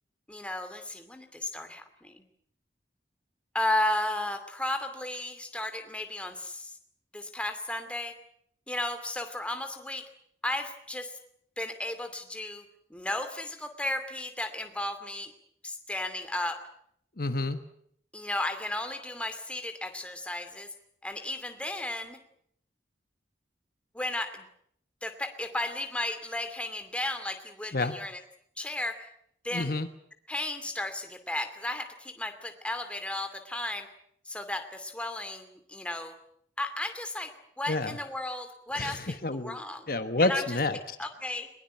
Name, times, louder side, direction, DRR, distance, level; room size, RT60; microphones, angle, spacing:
voice 1, 0.3-2.2 3.5-6.8 7.1-8.1 8.7-10.1 10.4-11.1 11.6-12.6 12.9-15.3 15.6-16.6 18.1-20.7 21.0-22.2 23.9-24.5 25.0-28.2 28.6-29.1 29.4-29.7 30.3-33.9 34.3-36.1 36.6-37.3 37.6-39.9 40.2-40.6 41.0-41.5, left 1 dB, 5° left, 7 dB, 2.5 m, -34 dB
voice 2, 17.2-17.6 27.7-28.0 29.5-29.9 37.7-38.0 38.8-39.6 39.9-41.0, left 2 dB, 55° left, 9 dB, 1.2 m, -29 dB
21.5 x 21.5 x 9.1 m, 0.68 s
head